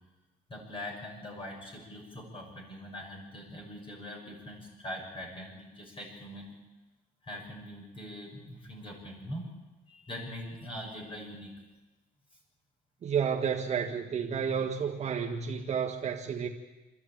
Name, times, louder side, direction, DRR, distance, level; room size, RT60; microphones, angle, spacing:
voice 1, 0.5-6.6 7.2-9.5 9.9-11.5, left 1 dB, 30° left, -1 dB, 6.2 m, -42 dB
voice 2, 13.0-16.5, right 7 dB, 40° right, 0 dB, 1.7 m, -31 dB
28.0 x 13.0 x 8.9 m, 1.2 s
cardioid pair, 110°, 17 cm